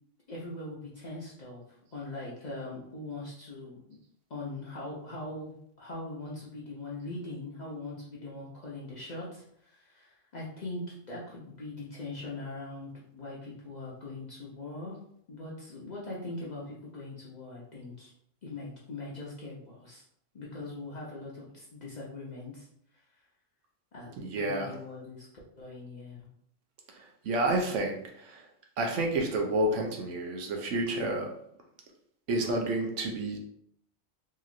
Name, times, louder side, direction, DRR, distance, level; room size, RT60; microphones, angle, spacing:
voice 1, 0.3-1.6 1.9-3.8 4.3-5.5 5.8-10.8 11.1-15.0 15.3-18.1 18.4-20.0 20.3-22.7 23.9-25.3 25.6-26.3, left 2 dB, 45° left, -5 dB, 0.6 m, -41 dB
voice 2, 24.2-24.7 26.9-28.5 28.8-31.3 32.3-33.4, right 2 dB, 75° right, 2 dB, 0.9 m, -30 dB
2.9 x 2.8 x 2.4 m, 0.70 s
omnidirectional pair, 1.3 m